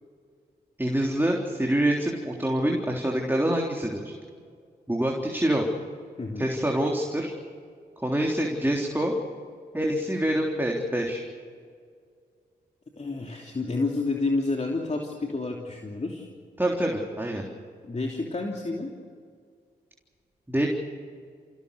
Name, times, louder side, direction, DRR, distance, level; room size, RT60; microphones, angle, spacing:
voice 1, 0.8-4.1 4.9-5.7 6.4-7.3 8.0-9.1 9.7-11.2 16.6-17.4 20.5-20.7, right 1 dB, 10° right, -1 dB, 3.6 m, -26 dB
voice 2, 6.2-6.5 13.0-16.3 17.8-18.9, left 3 dB, 40° left, 0 dB, 3.1 m, -29 dB
28.5 x 16.5 x 6.9 m, 2.1 s
supercardioid pair, 40°, 18 cm